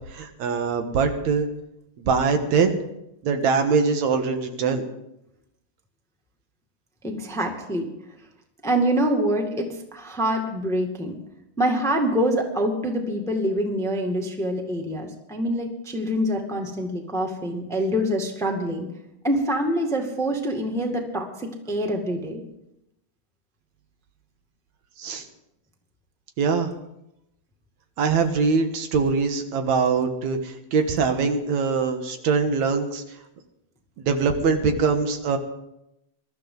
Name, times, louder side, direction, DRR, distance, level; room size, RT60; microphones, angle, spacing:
voice 1, 0.1-1.5 2.0-2.8 3.2-4.8 25.0-25.3 26.4-26.7 28.0-33.0 34.0-35.4, right 5 dB, 70° right, 6 dB, 2.6 m, -23 dB
voice 2, 7.0-7.9 8.6-11.2 11.6-18.9 19.2-22.4, equal, ahead, 2 dB, 1.4 m, -25 dB
23.0 x 13.0 x 3.9 m, 0.84 s
omnidirectional pair, 3.4 m